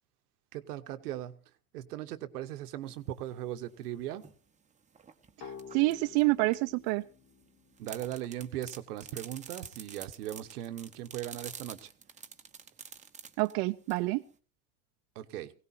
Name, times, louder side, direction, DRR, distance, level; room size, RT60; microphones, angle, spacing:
voice 1, 0.5-1.4 1.7-4.2 7.8-11.9 15.1-15.5, right 12 dB, 80° right, 10 dB, 1.1 m, -38 dB
sound 1, 2.9-4.4 4.9-7.0 7.7-14.4, right 6 dB, 15° right, 1.1 m, -48 dB
sound 2, 5.4-8.9, left 6 dB, 50° left, 2.0 m, -51 dB
voice 2, 5.4-7.0 13.4-14.2, right 22 dB, 60° right, 8 dB, 0.7 m, -28 dB
20.0 x 17.0 x 2.7 m, 0.38 s
hypercardioid pair, 105°, 45 cm